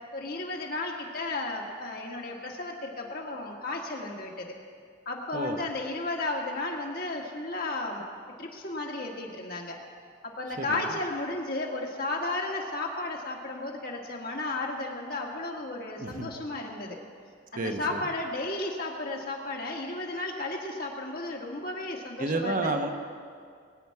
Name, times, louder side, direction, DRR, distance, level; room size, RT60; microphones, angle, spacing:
voice 1, 0.1-4.6 5.1-8.0 8.4-9.8 10.2-17.0 17.5-22.8, left 2 dB, 50° left, 0 dB, 1.8 m, -34 dB
voice 2, 16.0-16.3 17.6-18.0 22.2-22.9, right 2 dB, 45° right, 4 dB, 1.0 m, -30 dB
22.0 x 9.3 x 4.8 m, 2.2 s
head